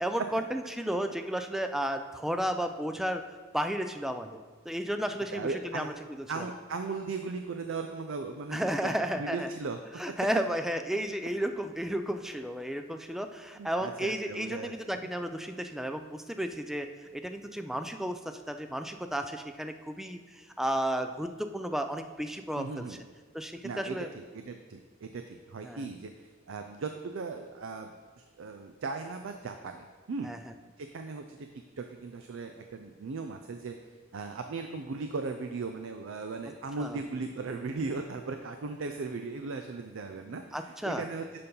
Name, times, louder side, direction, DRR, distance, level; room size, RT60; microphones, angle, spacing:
voice 1, 0.0-3.2 3.5-4.4 4.7-6.5 8.5-9.5 10.0-23.0 23.3-24.1 25.6-25.9 30.2-30.5 36.8-37.0 40.5-41.0, equal, ahead, 7 dB, 0.3 m, -33 dB
voice 2, 5.3-5.9 6.3-8.9 9.2-10.0 13.6-15.0 22.6-23.0 23.6-26.1 26.5-30.3 30.8-31.5 31.8-33.8 34.1-41.4, right 4 dB, 70° right, 6 dB, 0.5 m, -37 dB
6.7 x 5.2 x 5.4 m, 1.5 s
head